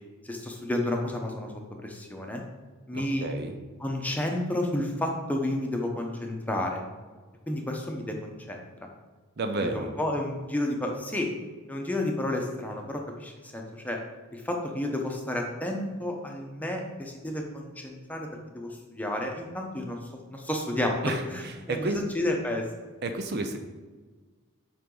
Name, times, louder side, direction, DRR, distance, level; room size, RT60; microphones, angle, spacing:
voice 1, 0.2-1.5 1.8-2.4 2.9-3.3 3.8-6.8 7.5-8.9 9.7-11.3 11.7-14.0 14.3-18.3 18.5-20.0 20.3-21.0 21.3-22.6, left 1 dB, 5° left, 1 dB, 0.9 m, -31 dB
voice 2, 2.9-3.6 9.4-9.9 21.0-22.1 23.0-23.6, right 2 dB, 50° right, 6 dB, 0.6 m, -31 dB
8.7 x 5.1 x 3.9 m, 1.4 s
head